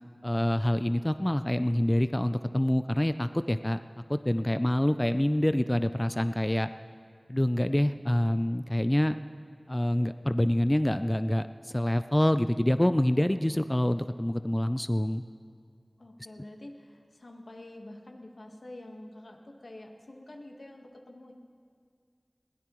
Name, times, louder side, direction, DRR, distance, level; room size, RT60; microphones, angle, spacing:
voice 1, 0.2-3.8 4.1-6.7 7.3-9.2 9.7-15.2, left 1 dB, 20° left, 11 dB, 0.4 m, -26 dB
voice 2, 16.0-21.3, left 1 dB, 85° left, 2 dB, 1.4 m, -47 dB
21.0 x 16.5 x 3.1 m, 2.1 s
wide cardioid pair, 45°, 0 cm